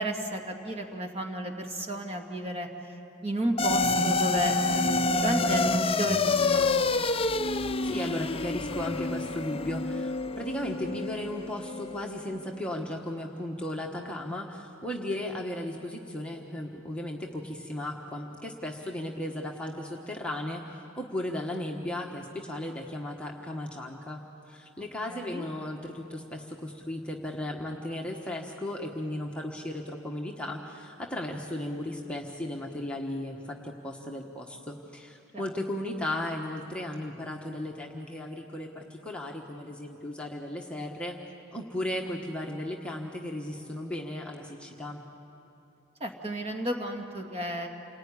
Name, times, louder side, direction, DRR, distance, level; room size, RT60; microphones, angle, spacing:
voice 1, 0.0-2.7 3.2-4.9 5.2-6.9 25.1-25.5 35.3-35.4 46.0-47.7, right 1 dB, 30° right, 2 dB, 2.3 m, -32 dB
sound 1, 3.6-12.1, left 3 dB, 25° left, 0.7 m, -27 dB
voice 2, 7.8-41.2 41.5-45.0, left 1 dB, 5° left, -1 dB, 1.3 m, -36 dB
28.5 x 19.5 x 9.9 m, 3.0 s
head